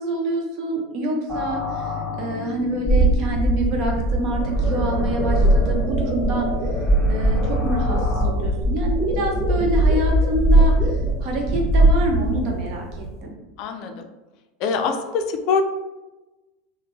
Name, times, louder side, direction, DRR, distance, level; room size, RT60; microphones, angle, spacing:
voice 1, 0.0-1.9 2.2-6.5 7.1-13.3, right 1 dB, 55° right, 0 dB, 0.8 m, -26 dB
sound 1, 1.3-8.2, left 2 dB, 30° right, 1.3 m, -31 dB
sound 2, 2.9-13.0, right 1 dB, 10° left, 1.3 m, -20 dB
voice 2, 13.6-14.1 14.6-15.6, left 5 dB, 55° left, 6 dB, 0.3 m, -23 dB
2.9 x 2.0 x 3.2 m, 1.1 s
hypercardioid pair, 85°, 0 cm